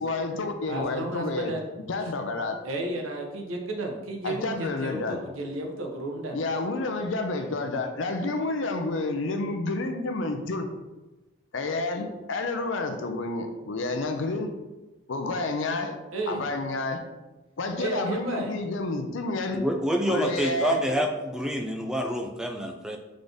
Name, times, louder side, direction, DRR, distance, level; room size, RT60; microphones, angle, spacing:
voice 1, 0.0-1.5 1.9-2.6 4.2-5.2 6.3-10.7 11.5-14.5 15.1-16.0 16.3-17.0 17.6-19.6 20.1-20.8, left 2 dB, 70° left, 6 dB, 0.5 m, -29 dB
voice 2, 0.7-1.6 2.6-6.4 16.1-16.4 17.8-18.5, right 2 dB, 85° right, 2 dB, 0.8 m, -32 dB
voice 3, 19.5-23.0, equal, 5° right, 3 dB, 0.3 m, -27 dB
3.9 x 3.8 x 3.4 m, 1.1 s
head